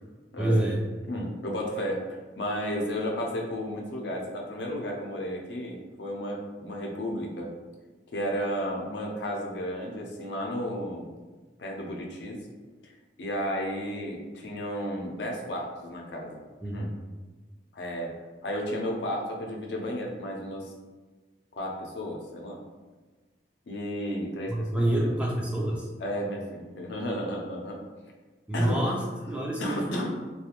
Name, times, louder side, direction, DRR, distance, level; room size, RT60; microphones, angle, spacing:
voice 1, 0.4-0.8 16.6-16.8 24.5-25.9 28.5-29.0 29.3-30.1, right 1 dB, 5° right, -3 dB, 0.3 m, -27 dB
voice 2, 1.1-7.5 8.1-11.1 11.6-12.4 12.8-12.9 13.2-16.4 16.7-16.9 17.7-18.2 18.4-20.7 21.6-22.6 23.7-25.2 26.0-27.8 28.5-28.9 29.6-30.1, equal, 80° left, 0 dB, 0.5 m, -33 dB
2.4 x 2.2 x 2.8 m, 1.3 s
head